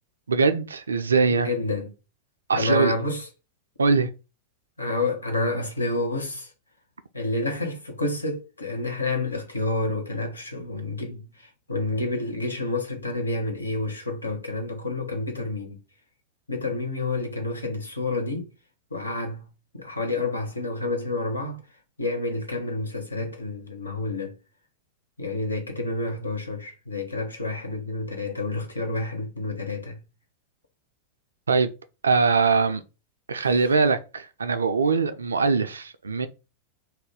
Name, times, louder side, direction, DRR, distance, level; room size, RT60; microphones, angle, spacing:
voice 1, 0.3-1.5 2.5-2.9 3.8-4.1 31.5-31.7 32.0-32.8 33.3-36.3, right 4 dB, 75° right, 0.3 m, -22 dB
voice 2, 1.3-1.9 2.5-3.3 4.8-6.5 7.1-15.8 16.5-18.5 18.9-19.5 19.7-21.6 22.0-24.4 25.2-30.0 33.4-33.5, left 2 dB, 80° left, 0.6 m, -29 dB
2.4 x 2.2 x 3.4 m
figure-of-eight pair, 90°, 0 cm